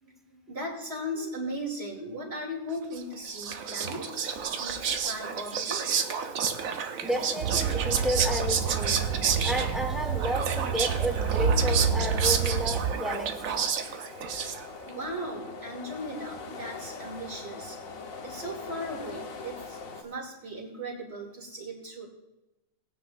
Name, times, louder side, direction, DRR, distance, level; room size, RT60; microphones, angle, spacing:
voice 1, 0.0-6.0 9.1-9.2 14.4-17.8 18.2-22.1, equal, 30° right, -1 dB, 2.6 m, -38 dB
Whispering, 2.9-14.9, right 7 dB, 60° right, 0.9 m, -30 dB
voice 2, 7.0-13.7, equal, ahead, 3 dB, 0.7 m, -32 dB
sound 1, 7.1-20.0, left 4 dB, 50° left, 1.2 m, -42 dB
sound 2, 7.4-12.9, right 6 dB, 85° right, 1.4 m, -28 dB
19.5 x 9.4 x 2.5 m, 1.0 s
omnidirectional pair, 2.2 m